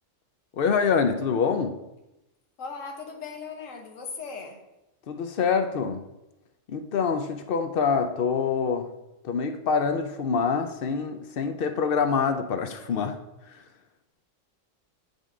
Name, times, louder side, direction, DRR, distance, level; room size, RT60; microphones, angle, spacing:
voice 1, 0.6-1.8 5.1-6.1 6.7-8.9 9.2-13.2, left 5 dB, 60° left, 8 dB, 0.6 m, -25 dB
voice 2, 2.6-4.6, left 5 dB, 75° left, 3 dB, 1.4 m, -38 dB
8.2 x 5.2 x 3.7 m, 0.95 s
omnidirectional pair, 1.3 m